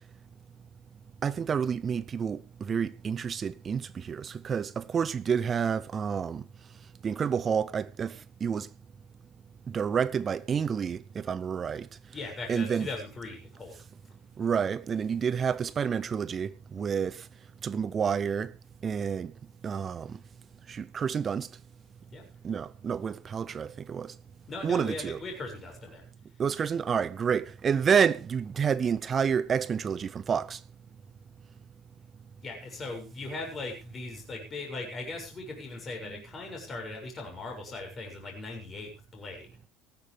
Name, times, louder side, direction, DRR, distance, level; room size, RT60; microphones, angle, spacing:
voice 1, 1.2-6.4 7.0-8.7 9.7-11.9 12.5-12.9 14.4-17.2 17.6-18.5 18.8-19.3 19.6-20.2 20.7-21.5 22.4-24.1 24.6-25.2 26.4-30.6, right 7 dB, 25° right, 0.7 m, -29 dB
voice 2, 12.1-13.7 22.1-22.2 24.5-26.0 32.4-39.5, left 3 dB, 25° left, 6.9 m, -39 dB
19.0 x 13.5 x 3.5 m
cardioid pair, 145°, 0 cm